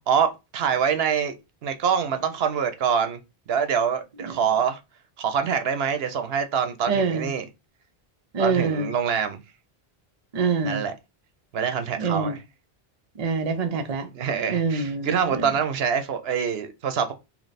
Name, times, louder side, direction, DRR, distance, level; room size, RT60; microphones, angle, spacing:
voice 1, 0.1-1.3 1.6-3.2 3.5-4.8 5.2-7.5 8.4-9.4 10.6-10.9 11.5-12.4 14.1-17.1, right 7 dB, 75° right, 0.9 m, -25 dB
voice 2, 6.9-7.3 8.3-8.9 10.3-10.8 12.0-12.3 13.2-14.1 14.5-15.5, right 5 dB, 45° right, 0.6 m, -25 dB
3.1 x 2.9 x 4.0 m
omnidirectional pair, 1.0 m